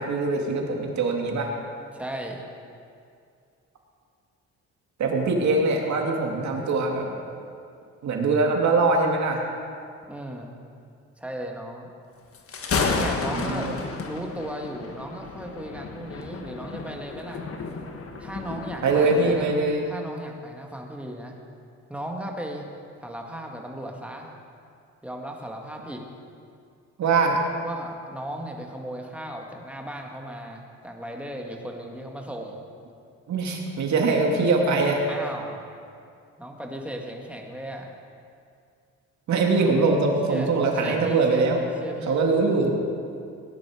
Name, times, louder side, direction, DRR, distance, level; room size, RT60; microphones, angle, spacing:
voice 1, 0.0-1.5 5.0-7.1 8.0-9.4 13.3-13.8 18.8-19.9 27.0-27.4 33.3-35.0 39.3-41.6 42.1-42.7, right 3 dB, 65° right, 1 dB, 2.4 m, -22 dB
voice 2, 1.9-2.4 10.1-10.5 11.2-11.9 12.9-13.7 14.0-17.5 18.2-19.5 19.9-21.4 21.9-22.7 23.0-24.4 25.0-26.0 27.6-32.6 35.1-35.6 36.4-37.9 39.6-39.7 40.3-40.5 40.8-41.4 41.8-42.2, right 1 dB, 5° right, 1 dB, 2.1 m, -36 dB
Thunder, 12.3-19.6, left 4 dB, 50° left, 1.5 m, -32 dB
18.0 x 10.5 x 5.1 m, 2.4 s
cardioid pair, 90°, 30 cm